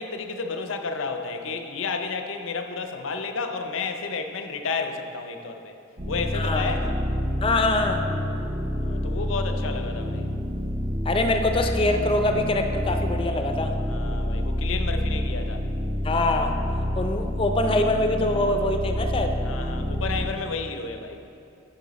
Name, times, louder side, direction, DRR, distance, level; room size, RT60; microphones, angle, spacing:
voice 1, 0.0-5.8 6.1-7.0 8.8-10.3 13.8-15.6 19.4-21.2, left 4 dB, 85° left, 6 dB, 0.6 m, -31 dB
sound 1, 6.0-20.2, equal, 35° right, 0.9 m, -28 dB
voice 2, 6.3-6.7 7.4-8.1 11.0-13.7 16.0-16.5 16.9-19.4, left 2 dB, 25° left, 5 dB, 0.5 m, -24 dB
9.2 x 5.4 x 4.1 m, 2.8 s
head